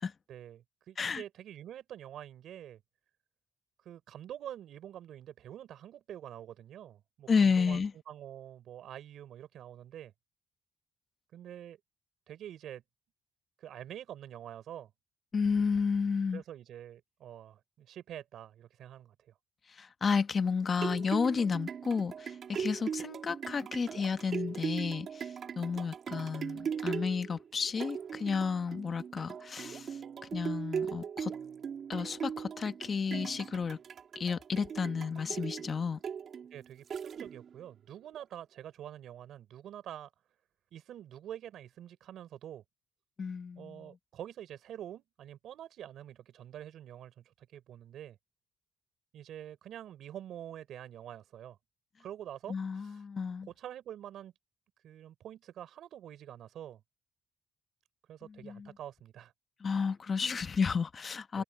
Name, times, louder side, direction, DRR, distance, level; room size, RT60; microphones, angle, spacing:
voice 1, 0.3-2.8 3.8-10.1 11.3-11.8 12.3-12.8 13.6-14.9 16.3-19.3 36.5-40.1 40.7-42.6 43.6-48.2 49.1-51.6 52.0-53.0 53.6-54.3 54.8-56.8 58.1-59.3 61.3-61.4, right 11 dB, 75° right, 4.3 m, -46 dB
voice 2, 7.3-7.9 15.3-16.4 19.7-30.0 30.3-31.3 31.9-33.8 34.1-36.0 43.2-44.0 52.5-53.5 58.2-58.7 59.6-61.4, left 5 dB, 40° left, 1.2 m, -32 dB
sound 1, 20.5-37.6 38.1-38.2, right 7 dB, 55° right, 2.4 m, -39 dB
cardioid pair, 90°, 0 cm